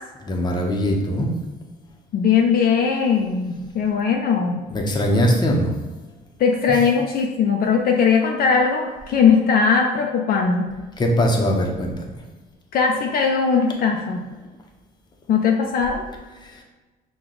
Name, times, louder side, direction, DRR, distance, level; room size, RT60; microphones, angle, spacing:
voice 1, 0.2-1.3 4.7-5.7 6.7-6.8 11.0-12.1 16.4-16.6, equal, 25° left, 1 dB, 0.8 m, -21 dB
voice 2, 2.1-4.7 6.4-10.7 12.7-14.2 15.3-16.0, left 6 dB, 60° left, 1 dB, 0.5 m, -19 dB
5.8 x 2.3 x 3.8 m, 1.2 s
cardioid pair, 110°, 17 cm